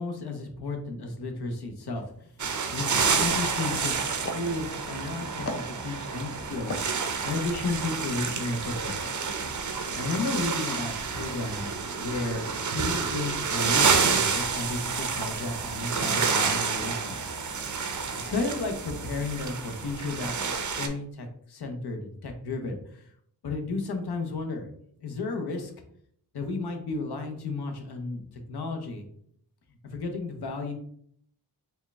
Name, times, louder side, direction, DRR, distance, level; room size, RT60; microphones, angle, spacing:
voice 1, 0.0-9.1 9.9-17.3 18.2-23.1 23.4-24.7 25.0-25.7 26.3-29.0 29.8-30.7, left 3 dB, 65° left, 4 dB, 0.8 m, -33 dB
sound 1, 1.9-2.1 2.4-2.7 3.0-3.2 3.6-4.0 4.2-5.1 5.5-6.2 6.7-8.0 8.3-8.5, left 2 dB, 35° left, 0.6 m, -38 dB
sound 2, 2.4-20.9, right 5 dB, 45° right, 0.6 m, -29 dB
4.4 x 2.1 x 3.4 m, 0.65 s
wide cardioid pair, 90°, 41 cm